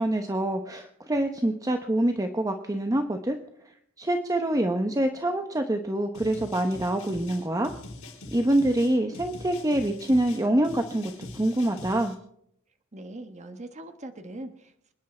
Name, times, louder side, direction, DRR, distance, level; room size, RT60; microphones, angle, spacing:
voice 1, 0.0-3.4 4.0-7.7 8.3-12.2, right 1 dB, 15° right, 5 dB, 0.9 m, -25 dB
sound 1, 6.1-12.1, left 2 dB, 75° left, 5.4 m, -43 dB
voice 2, 12.9-14.9, right 1 dB, 35° right, 7 dB, 1.3 m, -41 dB
26.5 x 10.5 x 4.4 m, 0.72 s
head